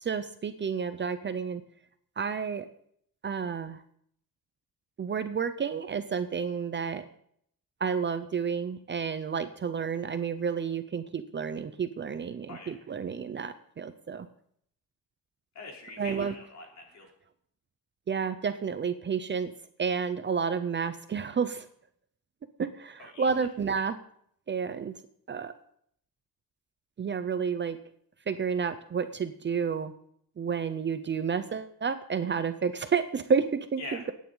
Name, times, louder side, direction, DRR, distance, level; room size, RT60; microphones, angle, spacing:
voice 1, 0.0-1.6 2.2-2.7 3.2-3.8 5.0-7.0 7.8-14.3 16.0-16.3 18.1-19.5 19.8-21.7 22.6-24.0 24.5-24.9 25.3-25.5 27.0-27.8 28.3-29.9 30.4-34.1, right 6 dB, 30° right, 10 dB, 0.6 m, -30 dB
voice 2, 15.5-17.1 23.0-23.3 33.8-34.0, left 3 dB, 50° left, 0 dB, 3.8 m, -43 dB
23.0 x 9.3 x 3.9 m, 0.66 s
wide cardioid pair, 180°, 35 cm